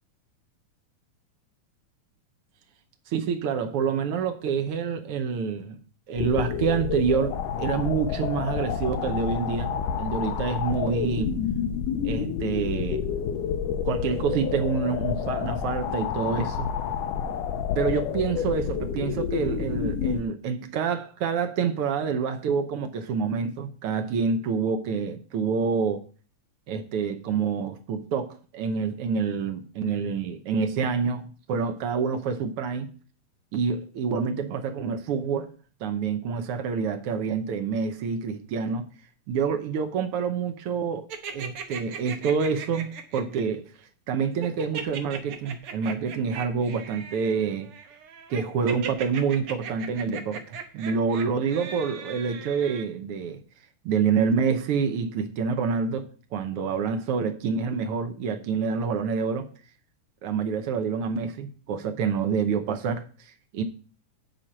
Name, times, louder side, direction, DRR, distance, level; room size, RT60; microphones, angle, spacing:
voice 1, 3.1-5.8 6.1-11.3 12.0-13.0 13.8-16.7 17.7-26.0 26.7-32.9 33.5-35.5 35.8-38.8 39.3-41.1 41.3-43.6 44.1-47.7 48.3-53.4 53.8-56.1 56.3-59.5 60.2-63.1 63.5-63.6, right 6 dB, 80° right, 1.2 m, -27 dB
sound 1, 6.2-20.2, left 8 dB, 80° left, 2.2 m, -29 dB
sound 2, 41.1-43.4 44.4-52.8, right 7 dB, 65° right, 1.5 m, -38 dB
9.6 x 4.3 x 7.4 m
omnidirectional pair, 3.7 m